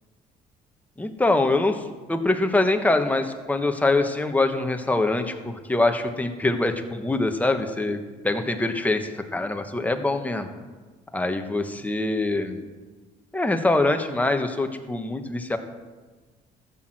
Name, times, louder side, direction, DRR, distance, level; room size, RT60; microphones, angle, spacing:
voice 1, 1.0-1.8 2.1-10.5 11.1-12.6 13.3-15.6, left 2 dB, 10° left, 6 dB, 1.2 m, -24 dB
13.5 x 6.3 x 7.7 m, 1.3 s
cardioid pair, 110°, 17 cm